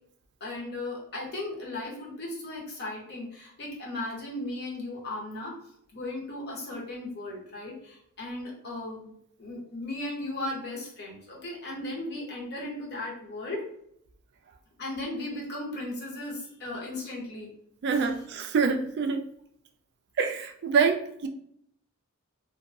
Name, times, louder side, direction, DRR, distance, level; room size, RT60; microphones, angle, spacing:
voice 1, 0.4-5.5 5.9-9.1 9.4-13.6 14.8-17.5 18.0-18.1, left 2 dB, 50° left, 0.8 m, -36 dB
voice 2, 17.8-19.3 20.2-21.3, right 5 dB, 50° right, 0.3 m, -26 dB
2.5 x 2.2 x 2.6 m
head